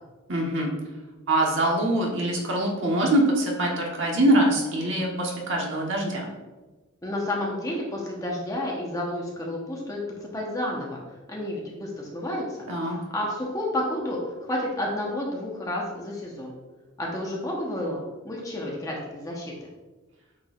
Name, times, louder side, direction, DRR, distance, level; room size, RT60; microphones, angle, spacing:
voice 1, 0.3-0.7 1.3-6.3 12.7-13.0, right 1 dB, 60° right, -1 dB, 1.3 m, -23 dB
voice 2, 7.0-11.0 11.3-12.4 12.9-14.2 14.5-16.5 17.0-19.5, left 1 dB, 15° left, -3 dB, 1.1 m, -30 dB
8.5 x 4.8 x 2.5 m, 1.2 s
head